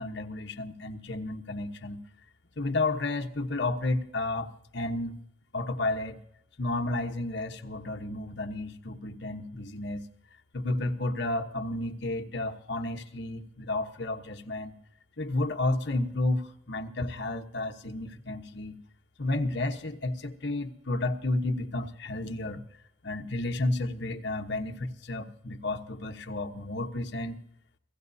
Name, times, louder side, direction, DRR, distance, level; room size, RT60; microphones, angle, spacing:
voice 1, 0.0-2.0 2.6-4.5 4.7-5.1 5.5-6.2 6.6-10.0 10.5-14.7 15.2-18.8 19.2-22.6 23.0-27.4, left 2 dB, 60° left, 4 dB, 1.1 m, -32 dB
28.5 x 16.5 x 2.8 m, 0.77 s
head